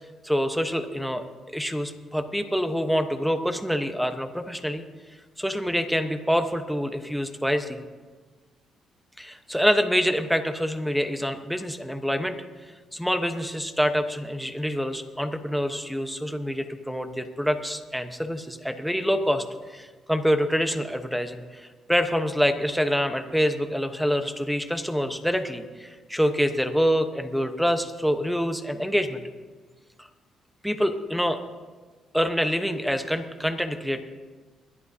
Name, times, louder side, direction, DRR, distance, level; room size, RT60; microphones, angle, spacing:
voice 1, 0.2-4.8 5.4-7.8 9.2-12.3 12.9-29.2 30.0-30.1 30.6-31.4 32.1-34.0, equal, ahead, 8 dB, 1.0 m, -26 dB
22.5 x 11.0 x 2.8 m, 1.4 s
cardioid pair, 90°, 0 cm